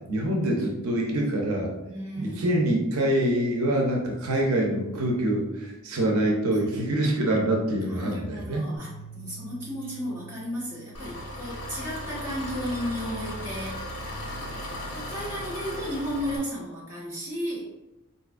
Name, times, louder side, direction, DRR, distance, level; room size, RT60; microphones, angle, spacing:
voice 1, 0.1-1.7 2.2-8.7, right 1 dB, 75° right, 0 dB, 0.6 m, -25 dB
voice 2, 1.8-2.6 6.5-7.2 7.8-13.9 14.2-14.6 14.9-17.7, equal, 10° right, -8 dB, 1.2 m, -34 dB
sound 1, 8.8-11.3, right 4 dB, 70° left, 0.7 m, -46 dB
Engine, 10.9-16.4, left 1 dB, 90° left, 1.4 m, -36 dB
4.2 x 2.6 x 2.4 m, 0.98 s
head